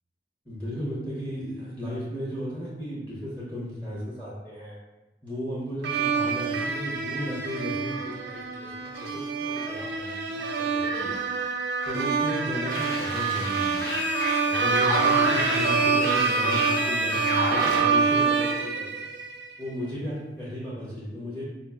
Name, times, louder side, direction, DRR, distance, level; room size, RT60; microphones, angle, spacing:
voice 1, 0.5-4.8 5.2-11.2 11.9-13.9 14.5-19.1 19.6-21.4, equal, 10° left, -8 dB, 0.7 m, -35 dB
sound 1, 5.8-19.5, right 5 dB, 75° right, 0.4 m, -26 dB
sound 2, 12.7-17.8, left 1 dB, 70° left, 0.9 m, -29 dB
5.2 x 2.4 x 2.3 m, 1.1 s
head